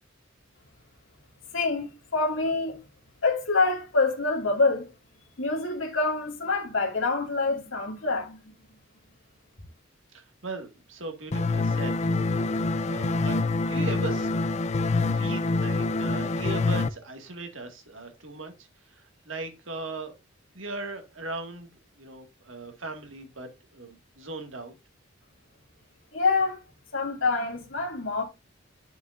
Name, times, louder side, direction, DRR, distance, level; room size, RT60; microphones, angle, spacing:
voice 1, 1.5-2.8 3.2-4.9 5.4-8.4 26.1-26.6 26.9-28.2, left 3 dB, 80° left, 2.4 m, -26 dB
voice 2, 10.1-12.0 12.3-13.4 13.6-14.3 15.1-20.2 20.5-24.7, right 3 dB, 75° right, 2.0 m, -39 dB
sound 1, 11.3-16.9, left 3 dB, 35° left, 0.5 m, -26 dB
10.0 x 6.7 x 2.6 m
head